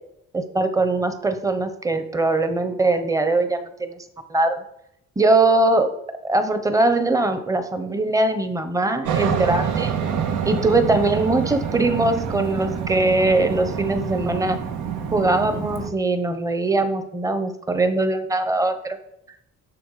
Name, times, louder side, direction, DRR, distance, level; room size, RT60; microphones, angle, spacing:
voice 1, 0.3-4.0 4.3-4.6 5.2-5.9 6.2-9.9 10.5-14.6 15.1-19.0, right 2 dB, 10° right, 9 dB, 0.8 m, -21 dB
Aircraft, 9.1-15.9, right 7 dB, 85° right, 1.6 m, -27 dB
10.5 x 7.0 x 4.8 m, 0.78 s
cardioid pair, 175°, 29 cm